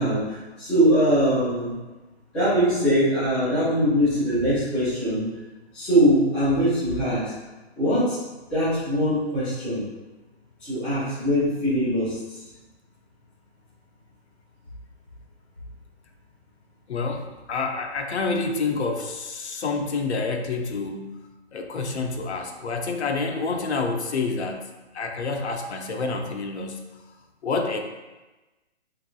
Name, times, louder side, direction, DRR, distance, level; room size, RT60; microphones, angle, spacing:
voice 1, 0.0-1.7 2.3-5.2 5.7-7.2 7.8-8.2 8.5-9.8 10.6-12.2, equal, 5° left, -15 dB, 0.4 m, -22 dB
voice 2, 16.9-21.1 21.5-24.6 24.9-26.8 27.4-27.8, left 4 dB, 80° left, 4 dB, 0.8 m, -28 dB
5.8 x 3.3 x 2.4 m, 1.1 s
hypercardioid pair, 160°, 33 cm